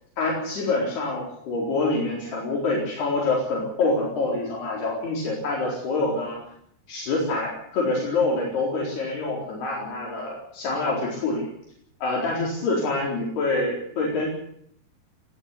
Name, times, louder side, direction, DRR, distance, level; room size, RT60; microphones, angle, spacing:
voice 1, 0.2-6.4 6.9-11.5 12.0-14.3, left 3 dB, 65° left, -3 dB, 6.4 m, -26 dB
20.0 x 15.5 x 10.0 m, 0.70 s
omnidirectional pair, 5.0 m